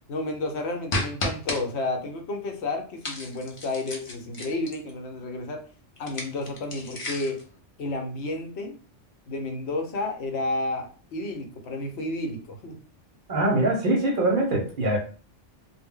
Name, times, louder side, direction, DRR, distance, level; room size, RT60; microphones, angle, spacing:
voice 1, 0.1-5.6 6.0-7.4 7.8-8.8 9.3-12.8, left 2 dB, 70° left, 4 dB, 0.9 m, -31 dB
sound 1, 0.9-1.6 3.0-4.9 6.0-7.4, left 1 dB, 40° left, 0.4 m, -32 dB
voice 2, 13.3-15.0, right 1 dB, 50° right, 0 dB, 0.7 m, -23 dB
2.2 x 2.0 x 3.6 m, 0.39 s
omnidirectional pair, 1.2 m